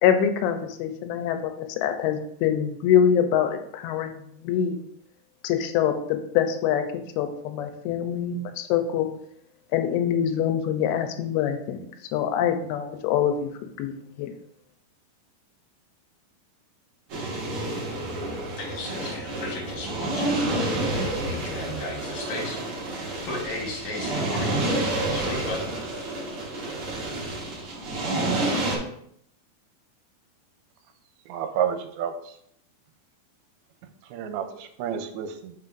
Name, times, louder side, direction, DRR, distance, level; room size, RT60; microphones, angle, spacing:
voice 1, 0.0-4.8 5.4-6.8 7.2-9.1 9.7-11.9 12.1-13.5 13.8-14.3, left 9 dB, 90° left, 7 dB, 2.6 m, -24 dB
sound 1, 17.1-28.8, right 2 dB, 55° right, 1.7 m, -29 dB
voice 2, 18.6-20.3 20.9-22.6 23.3-24.6 24.9-25.6, left 2 dB, 55° left, -1 dB, 2.3 m, -34 dB
voice 3, 31.3-32.4 34.0-35.5, right 8 dB, 85° right, 7 dB, 2.5 m, -30 dB
7.7 x 5.3 x 2.6 m, 0.70 s
omnidirectional pair, 4.4 m